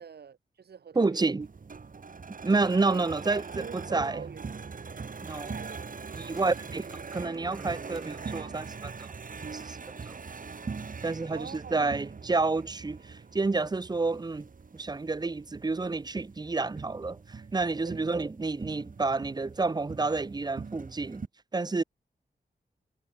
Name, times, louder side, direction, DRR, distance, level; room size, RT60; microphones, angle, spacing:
voice 1, 0.0-1.5 2.9-3.0 3.3-4.4 5.2-6.3 11.3-12.0 17.8-18.0, right 7 dB, 70° right, 0.9 m, -45 dB
voice 2, 0.9-1.5 2.4-4.2 5.2-5.6 6.2-9.1 9.5-9.8 10.0-10.2 11.0-14.5 14.7-21.2 21.5-21.8, right 3 dB, 25° right, 0.6 m, -29 dB
sound 1, 1.4-21.3, right 5 dB, 50° right, 1.6 m, -42 dB
sound 2, 4.2-7.6 7.9-9.9 10.7-10.8, equal, 5° right, 5.4 m, -64 dB
wide cardioid pair, 90°, 17 cm